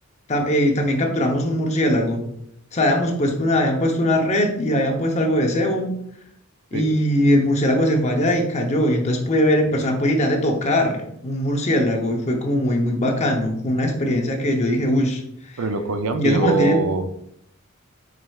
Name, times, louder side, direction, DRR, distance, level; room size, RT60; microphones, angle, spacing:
voice 1, 0.3-2.2 2.7-5.9 6.7-15.2 16.2-16.8, left 1 dB, 30° left, 2 dB, 0.7 m, -20 dB
voice 2, 15.6-17.1, right 3 dB, 70° right, 9 dB, 0.4 m, -23 dB
4.8 x 4.2 x 2.3 m, 0.72 s
head